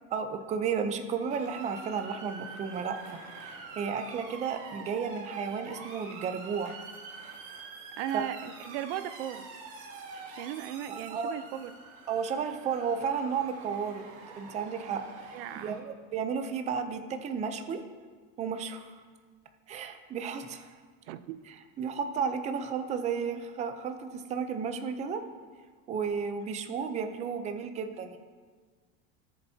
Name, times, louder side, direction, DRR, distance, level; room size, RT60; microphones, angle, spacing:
voice 1, 0.1-6.8 8.1-8.3 10.9-11.3 12.1-14.1 14.4-15.4 15.6-17.8 18.4-19.0 19.7-20.7 21.5-25.2 25.9-28.2, right 6 dB, 25° right, 7 dB, 0.5 m, -33 dB
Motor vehicle (road) / Siren, 1.3-15.8, right 4 dB, 50° right, 1.8 m, -46 dB
voice 2, 8.0-9.5 10.4-11.7 15.3-15.8 21.1-21.4, right 11 dB, 85° right, 12 dB, 0.6 m, -36 dB
18.0 x 6.9 x 2.8 m, 1.5 s
cardioid pair, 160°, 30 cm